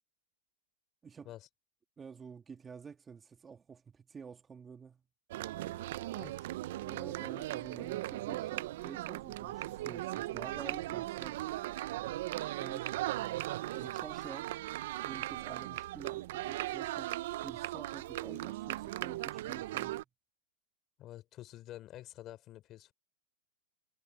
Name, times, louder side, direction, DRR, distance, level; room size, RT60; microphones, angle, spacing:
voice 1, 2.0-5.0 6.8-11.4 12.5-13.0 13.7-14.5 15.0-17.2 17.4-20.0, right 6 dB, 15° right, 2.4 m, -49 dB
sound 1, 5.3-20.0, right 16 dB, 65° right, 0.6 m, -38 dB
voice 2, 21.0-22.9, left 14 dB, 35° left, 3.5 m, -48 dB
hypercardioid pair, 135°, 0 cm